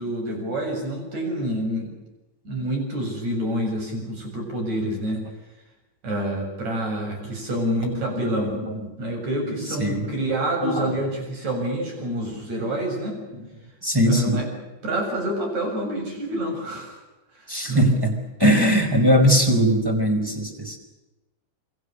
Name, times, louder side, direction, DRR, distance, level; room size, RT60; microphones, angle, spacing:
voice 1, 0.0-2.0 2.4-5.2 6.0-8.6 9.0-13.2 14.1-17.0 17.3-17.9, right 1 dB, 40° right, 3 dB, 8.3 m, -27 dB
voice 2, 7.8-8.8 9.5-10.1 10.6-10.9 13.3-13.4 13.8-14.5 17.5-18.1 18.4-20.8, equal, 5° right, 5 dB, 4.1 m, -21 dB
28.5 x 23.0 x 6.7 m, 1.1 s
omnidirectional pair, 5.1 m